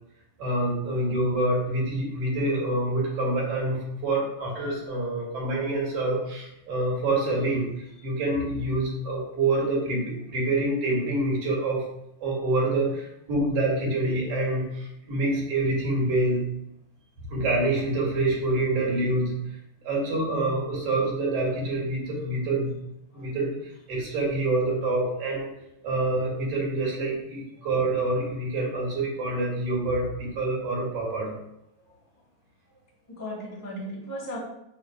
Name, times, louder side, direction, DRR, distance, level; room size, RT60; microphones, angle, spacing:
voice 1, 0.4-11.8 12.2-16.5 17.3-19.3 19.8-22.8 23.1-25.5 25.8-31.3, right 2 dB, 50° right, -3 dB, 3.1 m, -26 dB
voice 2, 33.1-34.4, equal, 5° left, -5 dB, 1.7 m, -36 dB
5.7 x 4.1 x 5.9 m, 0.82 s
omnidirectional pair, 3.6 m